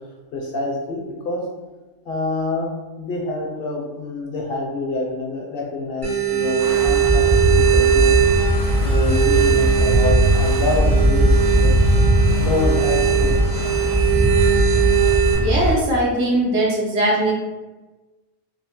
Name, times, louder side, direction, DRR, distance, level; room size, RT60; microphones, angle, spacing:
voice 1, 0.3-1.4 2.0-2.7 3.0-8.2 8.8-11.7 12.4-13.3, left 2 dB, 60° left, -1 dB, 0.7 m, -26 dB
sound 1, 6.0-15.3, right 8 dB, 45° right, 0.7 m, -20 dB
Wind, 6.6-15.8, right 1 dB, 5° right, 0.3 m, -19 dB
voice 2, 15.4-17.3, right 1 dB, 75° right, -4 dB, 1.1 m, -20 dB
2.8 x 2.0 x 2.8 m, 1.2 s
omnidirectional pair, 1.3 m